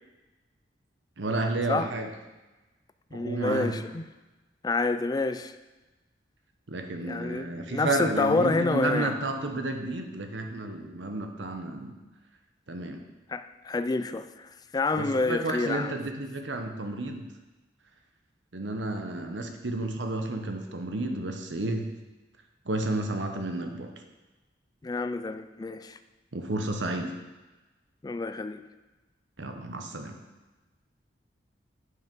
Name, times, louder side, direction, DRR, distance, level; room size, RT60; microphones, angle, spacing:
voice 1, 1.2-2.1 3.1-3.8 6.7-12.0 12.7-13.0 14.9-17.3 18.5-21.9 22.6-23.9 26.3-27.2 29.4-30.2, right 2 dB, 80° right, 5 dB, 1.0 m, -31 dB
voice 2, 3.1-4.1 4.6-5.5 7.0-9.1 13.3-15.9 24.8-26.0 28.0-28.6, left 3 dB, 20° left, 11 dB, 0.3 m, -28 dB
7.9 x 5.7 x 5.3 m, 1.1 s
head